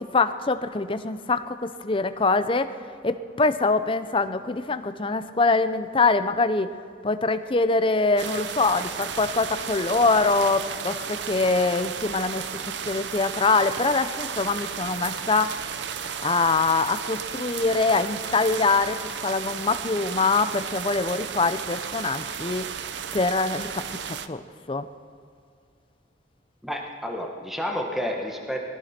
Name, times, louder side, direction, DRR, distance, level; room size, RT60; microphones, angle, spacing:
voice 1, 0.1-1.6 1.8-2.7 3.0-6.7 7.0-12.5 12.9-15.6 16.2-22.7 23.1-24.4 24.7-24.9, left 3 dB, 30° left, 11 dB, 0.6 m, -24 dB
sound 1, 8.2-24.3, right 7 dB, 65° right, 0.6 m, -34 dB
voice 2, 26.6-28.6, equal, ahead, 1 dB, 1.3 m, -30 dB
21.0 x 15.5 x 4.4 m, 2.4 s
head